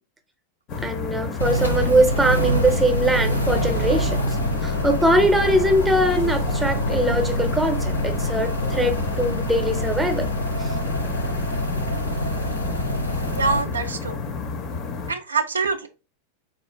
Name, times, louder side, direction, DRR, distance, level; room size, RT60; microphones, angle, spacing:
sound 1, 0.7-15.1, left 4 dB, 35° left, 0.5 m, -31 dB
voice 1, 0.8-4.2 4.6-10.3 10.6-10.7, right 1 dB, 5° right, 0.6 m, -21 dB
sound 2, 1.4-13.6, equal, 85° left, 0.6 m, -26 dB
voice 2, 13.3-14.2 15.1-15.9, right 4 dB, 75° right, 0.3 m, -25 dB
3.7 x 2.4 x 2.9 m
figure-of-eight pair, 90°, 0 cm